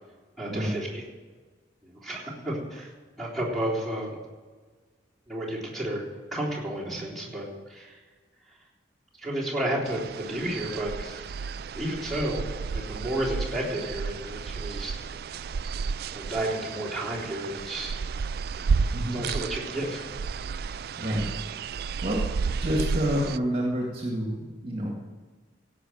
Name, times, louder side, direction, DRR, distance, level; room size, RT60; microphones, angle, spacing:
voice 1, 0.4-1.0 1.8-2.9 3.2-4.2 5.3-6.0 6.3-8.0 9.2-11.4 11.7-12.5 12.7-14.9 16.1-18.0 18.6-18.7 19.1-20.0 20.4-20.5, right 1 dB, ahead, -8 dB, 3.7 m, -32 dB
sound 1, 9.9-23.4, right 5 dB, 55° right, 0.3 m, -32 dB
voice 2, 21.0-21.4 22.0-25.0, equal, 30° right, -2 dB, 2.0 m, -29 dB
16.5 x 6.0 x 7.8 m, 1.4 s
head